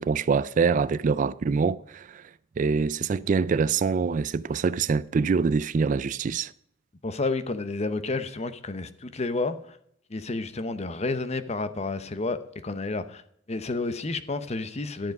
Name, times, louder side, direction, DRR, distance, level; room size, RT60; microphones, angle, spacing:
voice 1, 0.0-2.2 2.6-6.5, right 5 dB, 40° right, 0.3 m, -25 dB
voice 2, 7.0-9.8 10.1-13.2 13.5-15.1, left 3 dB, 35° left, 0.8 m, -30 dB
12.0 x 7.6 x 5.3 m
head